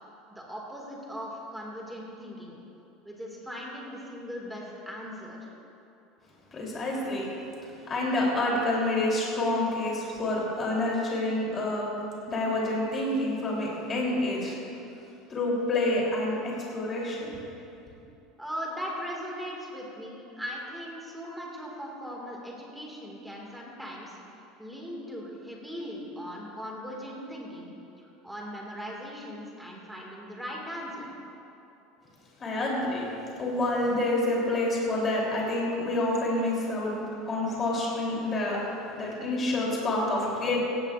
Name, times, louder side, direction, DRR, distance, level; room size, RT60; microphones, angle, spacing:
voice 1, 0.3-2.6 3.0-5.4 18.4-24.2 24.6-31.1, equal, 5° right, -2 dB, 1.9 m, -39 dB
voice 2, 6.5-7.3 7.9-11.9 12.3-14.5 15.3-17.4 32.4-33.1 33.4-37.0 37.3-38.7 38.9-40.6, left 2 dB, 20° left, -4 dB, 3.1 m, -28 dB
17.0 x 15.5 x 2.4 m, 2.9 s
cardioid pair, 165°, 0 cm